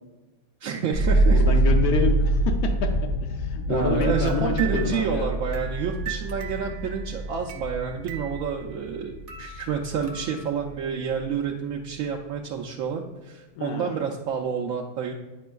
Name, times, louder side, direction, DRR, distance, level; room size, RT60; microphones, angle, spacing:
voice 1, 0.6-1.6 3.7-15.1, right 6 dB, 75° right, 0 dB, 0.9 m, -29 dB
sound 1, 0.9-10.9 11.2-11.9, right 1 dB, 70° left, 1.0 m, -25 dB
voice 2, 1.3-2.9 3.2-5.3 13.6-14.0, left 5 dB, 85° left, 3 dB, 1.1 m, -28 dB
sound 2, 3.9-9.0 9.3-10.6, right 7 dB, 55° right, 0.6 m, -41 dB
9.1 x 5.1 x 2.3 m, 1.2 s
omnidirectional pair, 1.5 m